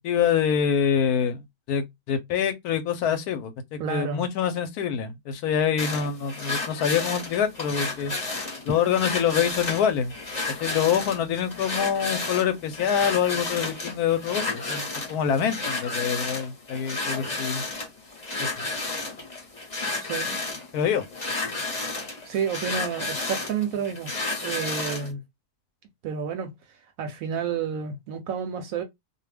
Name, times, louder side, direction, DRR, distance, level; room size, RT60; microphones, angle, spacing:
voice 1, 0.0-8.1 8.6-10.1 10.6-17.6 18.4-18.5 20.7-21.0, left 8 dB, 75° left, 1.1 m, -25 dB
voice 2, 3.8-4.3 20.0-20.4 22.2-25.2 26.0-26.5 27.0-28.8, right 7 dB, 70° right, 0.9 m, -30 dB
sound 1, 5.8-25.1, left 3 dB, 30° left, 0.9 m, -32 dB
2.6 x 2.2 x 3.2 m
omnidirectional pair, 1.7 m